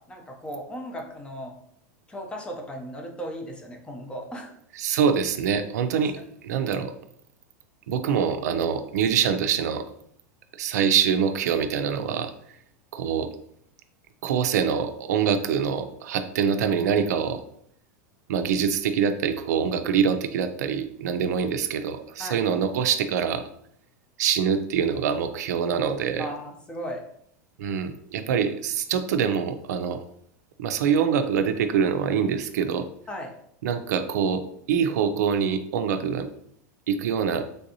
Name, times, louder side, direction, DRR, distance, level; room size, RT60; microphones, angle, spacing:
voice 1, 0.0-1.5 2.1-4.5 22.2-22.4 26.2-27.0 33.1-33.3, equal, 10° left, 2 dB, 0.5 m, -36 dB
voice 2, 4.8-6.2 6.4-6.9 7.9-9.9 10.6-12.3 12.9-13.3 14.2-17.4 18.3-23.4 24.2-26.3 27.6-30.0 30.6-32.9 33.6-36.3 36.9-37.5, right 7 dB, 85° right, 8 dB, 0.4 m, -24 dB
3.3 x 2.6 x 2.7 m, 0.67 s
supercardioid pair, 135°, 9 cm